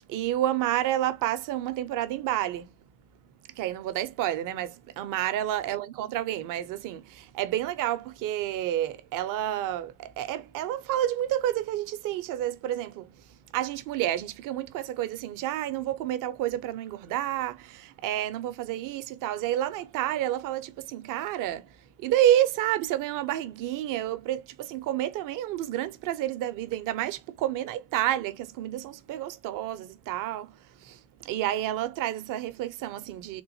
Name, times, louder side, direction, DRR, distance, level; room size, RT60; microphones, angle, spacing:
voice 1, 0.0-2.9 3.5-33.4, right 13 dB, 40° right, 0.6 m, -30 dB
3.7 x 2.5 x 2.7 m
hypercardioid pair, 80°, 49 cm